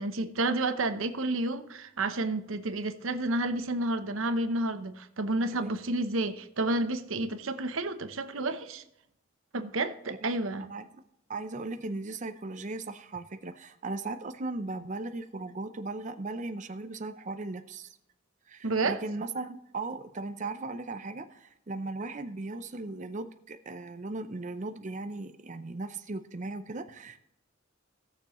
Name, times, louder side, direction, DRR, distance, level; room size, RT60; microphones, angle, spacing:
voice 1, 0.0-8.8 9.5-10.7 18.6-19.0, right 2 dB, 90° right, 9 dB, 0.9 m, -30 dB
voice 2, 11.3-17.9 18.5-27.2, right 3 dB, 40° right, 8 dB, 0.6 m, -37 dB
18.0 x 6.8 x 3.1 m, 0.79 s
head